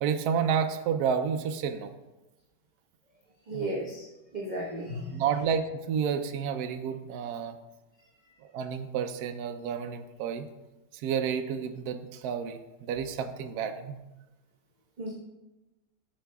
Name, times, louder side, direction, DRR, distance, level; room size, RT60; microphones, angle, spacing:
voice 1, 0.0-1.9 3.5-3.7 5.1-7.6 8.5-10.5 11.0-14.0, right 7 dB, 70° right, 7 dB, 1.1 m, -30 dB
voice 2, 3.5-4.1 4.3-5.2 15.0-15.1, right 1 dB, 30° right, -5 dB, 1.1 m, -34 dB
14.0 x 6.4 x 2.3 m, 1.0 s
omnidirectional pair, 1.8 m